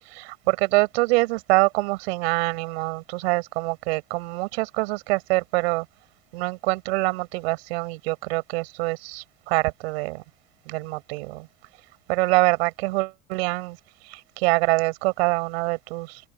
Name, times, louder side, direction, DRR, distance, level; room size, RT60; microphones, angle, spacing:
voice 1, 0.1-5.9 6.3-10.2 10.7-11.5 12.1-13.8 14.0-16.3, right 25 dB, 75° right, 5.8 m, -25 dB
open air
hypercardioid pair, 85°, 31 cm